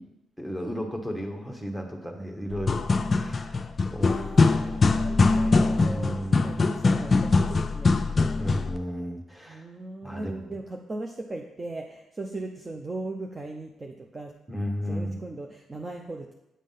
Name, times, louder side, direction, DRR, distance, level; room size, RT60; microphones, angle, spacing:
voice 1, 0.4-4.1 4.6-4.8 5.4-6.5 8.4-9.7 10.0-10.5 14.5-15.2, equal, 5° right, 3 dB, 1.2 m, -34 dB
sound 1, 2.5-8.8, left 3 dB, 35° left, 0.4 m, -22 dB
voice 2, 4.0-8.6 9.5-14.3 14.9-16.3, right 2 dB, 25° right, 2 dB, 0.6 m, -38 dB
8.5 x 3.6 x 5.5 m, 0.89 s
cardioid pair, 90°, 0 cm